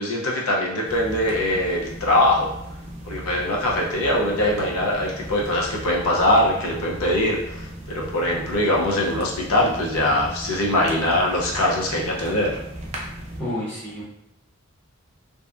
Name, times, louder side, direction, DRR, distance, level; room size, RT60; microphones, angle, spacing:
voice 1, 0.0-2.5 3.0-12.6, left 1 dB, 85° left, -2 dB, 0.5 m, -22 dB
sound 1, 0.8-13.4, right 1 dB, 30° right, 0.4 m, -37 dB
voice 2, 13.4-14.0, left 1 dB, 10° left, -9 dB, 0.8 m, -29 dB
2.6 x 2.2 x 2.4 m, 0.81 s
head